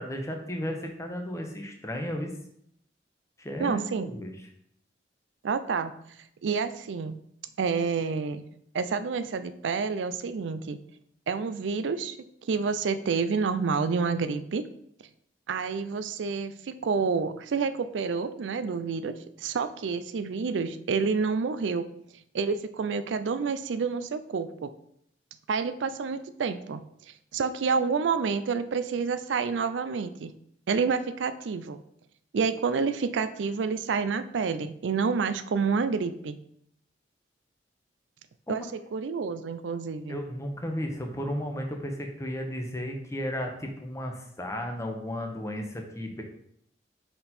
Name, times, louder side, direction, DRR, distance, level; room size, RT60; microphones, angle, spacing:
voice 1, 0.0-2.3 3.4-4.3 38.5-38.7 40.1-46.2, equal, 15° left, 3 dB, 0.8 m, -34 dB
voice 2, 3.6-4.1 5.4-5.9 6.4-7.2 7.6-8.4 8.7-10.8 11.3-12.2 12.4-14.7 15.5-21.9 22.3-24.7 25.5-26.8 27.3-30.3 30.7-31.8 32.3-36.4 38.5-38.6 38.9-40.2, right 5 dB, 90° right, 12 dB, 0.4 m, -28 dB
5.2 x 4.4 x 4.3 m, 0.71 s
head